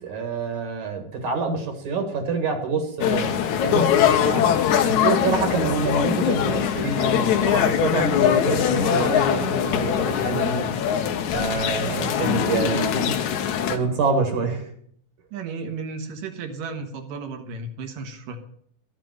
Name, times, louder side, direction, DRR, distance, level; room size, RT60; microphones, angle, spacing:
voice 1, 0.0-3.3 3.6-4.6 4.8-10.7 11.3-13.1 13.7-14.7, right 4 dB, 65° right, 5 dB, 2.9 m, -26 dB
sound 1, 3.0-13.8, left 9 dB, 70° left, 2.2 m, -22 dB
voice 2, 10.3-10.6 15.3-18.4, right 3 dB, 80° right, 5 dB, 3.1 m, -34 dB
13.0 x 7.6 x 7.6 m, 0.64 s
omnidirectional pair, 3.9 m